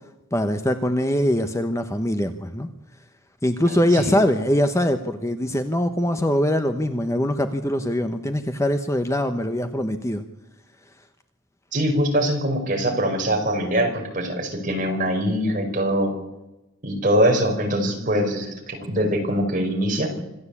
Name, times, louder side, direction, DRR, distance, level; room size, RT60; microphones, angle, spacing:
voice 1, 0.3-2.7 3.4-10.2, left 1 dB, 15° left, 8 dB, 1.0 m, -22 dB
voice 2, 3.7-4.1 11.7-16.2 16.8-20.1, equal, 40° right, 1 dB, 5.3 m, -23 dB
26.0 x 14.5 x 8.5 m, 0.99 s
head